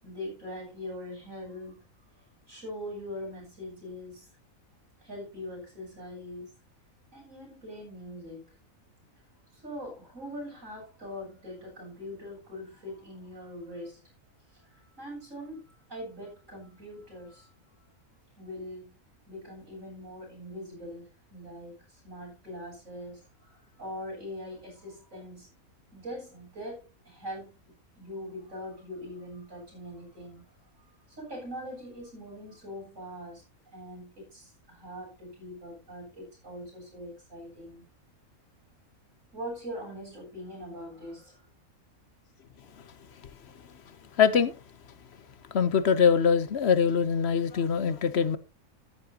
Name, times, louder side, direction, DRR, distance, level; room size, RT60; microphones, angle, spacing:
voice 1, 0.0-1.8 2.5-4.3 5.0-6.5 7.1-8.5 9.5-14.0 14.5-17.5 18.4-18.9 19.3-21.0 21.3-25.5 25.9-27.6 27.9-30.4 31.1-33.4 33.7-37.8 39.3-41.4, equal, 65° right, 8.0 m, -42 dB
voice 2, 44.2-44.5 45.5-48.4, left 6 dB, 55° left, 1.0 m, -23 dB
13.5 x 11.0 x 2.8 m
omnidirectional pair, 1.5 m